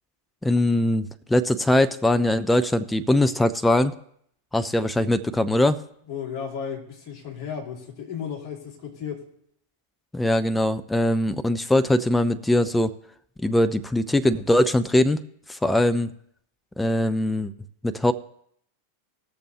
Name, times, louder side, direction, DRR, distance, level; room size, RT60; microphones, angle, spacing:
voice 1, 0.4-3.9 4.5-5.8 10.1-12.9 13.4-15.2 15.5-16.1 16.8-17.5 17.8-18.1, left 1 dB, 5° left, 11 dB, 0.5 m, -21 dB
voice 2, 6.1-9.2, left 7 dB, 40° left, -3 dB, 2.6 m, -34 dB
19.5 x 6.8 x 2.9 m, 0.68 s
figure-of-eight pair, 90°, 0 cm